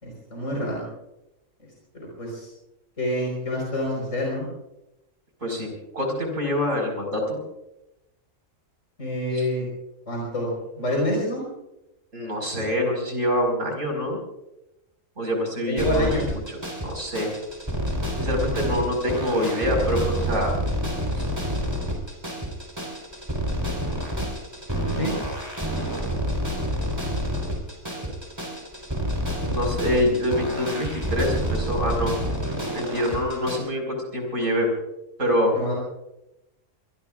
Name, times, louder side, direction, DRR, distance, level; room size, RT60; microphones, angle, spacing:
voice 1, 0.0-0.9 1.9-2.5 3.0-4.4 9.0-9.7 10.1-11.4 15.6-16.3 24.9-25.1 35.5-35.7, left 1 dB, 70° left, -3 dB, 5.0 m, -27 dB
voice 2, 5.4-7.4 9.3-9.5 12.1-14.2 15.2-17.3 18.2-20.5 21.2-21.3 27.9-28.0 29.5-32.2 32.7-34.7 35.2-35.5, left 1 dB, 70° right, 2 dB, 5.5 m, -25 dB
sound 1, 15.8-33.6, equal, 20° right, 4.1 m, -28 dB
24.5 x 22.0 x 2.5 m, 0.90 s
omnidirectional pair, 1.4 m